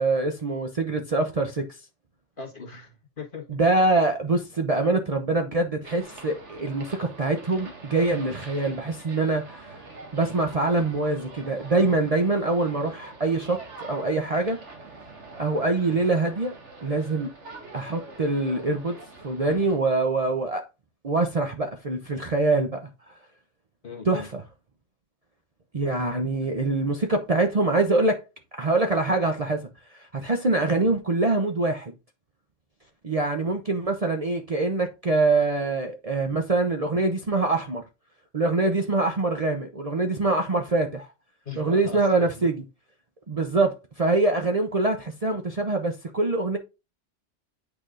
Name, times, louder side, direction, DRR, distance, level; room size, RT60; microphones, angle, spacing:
voice 1, 0.0-1.7 3.5-9.7 10.1-13.6 13.9-14.6 15.4-16.5 16.8-17.3 17.7-19.0 19.2-20.6 21.0-22.9 24.0-24.4 25.7-28.2 28.5-31.9 33.0-37.8 38.3-41.1 41.6-42.5 43.3-46.6, right 2 dB, 35° right, 0.7 m, -24 dB
voice 2, 2.4-3.5 15.9-16.0 23.8-24.3 26.3-26.5 33.4-33.5 41.4-42.5, left 4 dB, 45° left, 1.6 m, -39 dB
sound 1, 5.8-19.8, right 3 dB, 70° right, 2.1 m, -44 dB
8.7 x 4.8 x 2.5 m
omnidirectional pair, 1.2 m